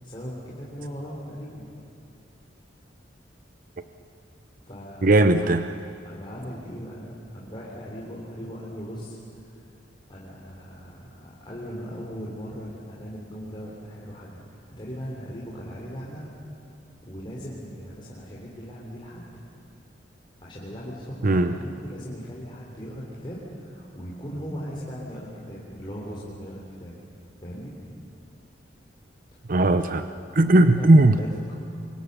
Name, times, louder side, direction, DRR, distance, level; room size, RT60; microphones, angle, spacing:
voice 1, 0.0-1.7 4.6-5.1 6.1-9.6 10.1-16.3 17.0-19.4 20.4-26.9 27.4-27.7 30.4-31.5, equal, 25° left, -5 dB, 3.6 m, -38 dB
voice 2, 5.0-5.8 21.2-21.6 29.5-30.1 30.3-31.2, right 2 dB, 50° right, 9 dB, 0.7 m, -18 dB
29.5 x 24.5 x 6.9 m, 2.4 s
head